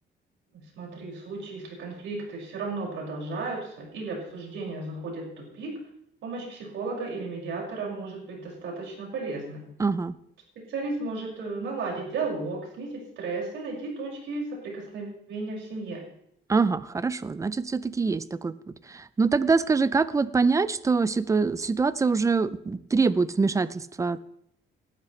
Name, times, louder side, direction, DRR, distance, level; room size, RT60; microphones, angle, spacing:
voice 1, 0.5-5.8 6.2-9.7 10.6-16.0, right 3 dB, 85° right, -2 dB, 5.7 m, -34 dB
voice 2, 9.8-10.2 16.5-18.5 18.9-24.2, right 4 dB, 15° right, 16 dB, 0.4 m, -24 dB
18.0 x 12.5 x 3.2 m, 0.73 s
cardioid pair, 175°, 20 cm